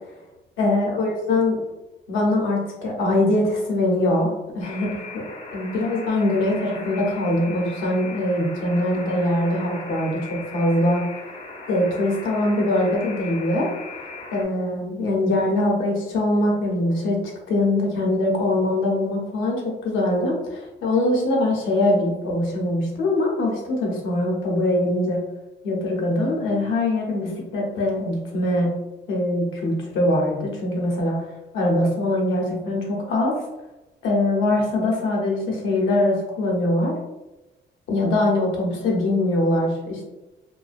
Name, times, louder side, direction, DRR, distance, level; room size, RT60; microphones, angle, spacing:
voice 1, 0.6-1.6 2.1-5.2 5.5-11.1 11.7-13.7 14.3-17.2 17.5-25.2 25.6-28.7 29.1-31.2 31.5-33.4 34.0-37.0 37.9-40.0, left 1 dB, 80° left, -1 dB, 0.7 m, -22 dB
Alarm, 4.6-14.4, left 3 dB, 30° left, 0.5 m, -38 dB
2.4 x 2.1 x 2.4 m, 1.0 s
cardioid pair, 90°, 20 cm